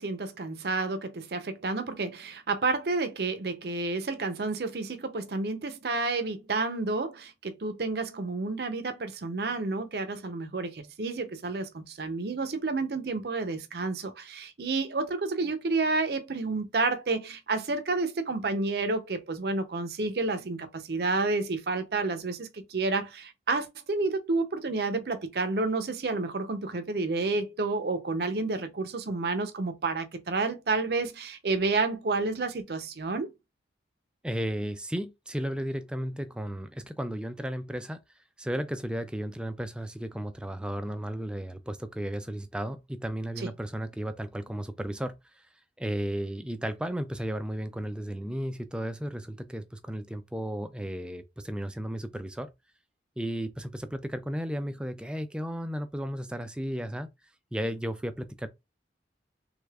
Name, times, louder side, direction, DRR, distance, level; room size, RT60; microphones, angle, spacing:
voice 1, 0.0-33.3 43.4-43.5, right 3 dB, 60° right, 0.6 m, -30 dB
voice 2, 34.2-38.0 38.4-45.5 45.8-52.5 53.2-57.1 57.5-58.5, equal, 5° right, 0.3 m, -34 dB
3.5 x 3.3 x 2.3 m
head